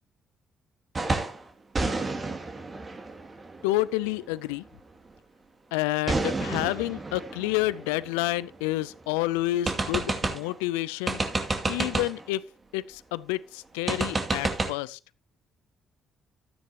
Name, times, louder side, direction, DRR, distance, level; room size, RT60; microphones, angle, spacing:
sound 1, 0.9-1.4 1.7-4.4 6.1-8.8 9.1-9.2 9.7-10.6 11.1-12.3 13.9-14.7, right 3 dB, 35° right, 2.4 m, -30 dB
voice 1, 3.6-4.6 5.7-11.2 11.7-12.4 12.7-15.0, left 17 dB, 85° left, 0.4 m, -29 dB
13.0 x 9.7 x 2.9 m
hypercardioid pair, 50°, 0 cm